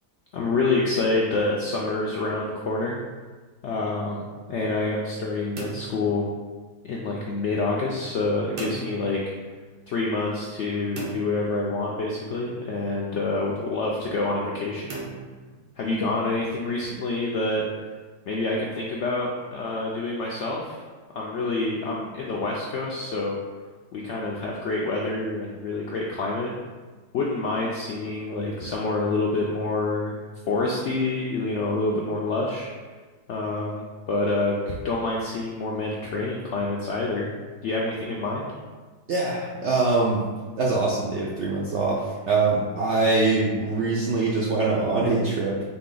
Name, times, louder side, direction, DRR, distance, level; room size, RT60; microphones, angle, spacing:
voice 1, 0.3-3.0 3.6-6.3 6.8-9.2 9.9-15.0 15.8-17.6 18.3-20.8 21.2-23.4 23.9-26.5 27.1-30.2 30.5-32.7 33.3-37.3 37.6-38.5, left 3 dB, 75° left, -3 dB, 0.6 m, -27 dB
sound 1, 5.6-6.9 8.6-9.6 11.0-12.2 14.9-16.1, right 4 dB, 90° right, 1.4 m, -38 dB
voice 2, 39.1-40.2 40.6-45.6, right 3 dB, 70° right, -4 dB, 0.6 m, -23 dB
4.1 x 2.8 x 3.8 m, 1.4 s
omnidirectional pair, 1.7 m